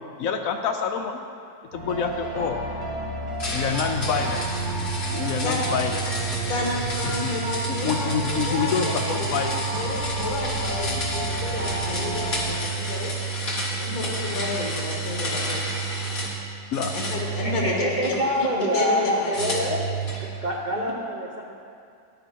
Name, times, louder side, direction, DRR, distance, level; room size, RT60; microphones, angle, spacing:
voice 1, 0.2-1.2 1.7-2.6 3.5-4.6 5.1-6.0 7.0-7.3 7.7-9.6 16.7-16.9, left 6 dB, 70° left, 5 dB, 0.8 m, -27 dB
sound 1, 1.7-12.5, equal, 80° right, 2.2 m, -33 dB
sound 2, 3.4-16.4 16.7-18.2 19.3-20.3, right 3 dB, 35° left, 1.5 m, -29 dB
voice 2, 6.5-13.1 13.8-15.6 16.9-18.1 18.7-19.6 20.7-20.9, left 3 dB, 55° left, -2 dB, 2.1 m, -31 dB
voice 3, 17.4-19.8 20.2-21.5, equal, 55° right, -2 dB, 0.5 m, -26 dB
10.5 x 9.1 x 4.5 m, 2.4 s
omnidirectional pair, 2.0 m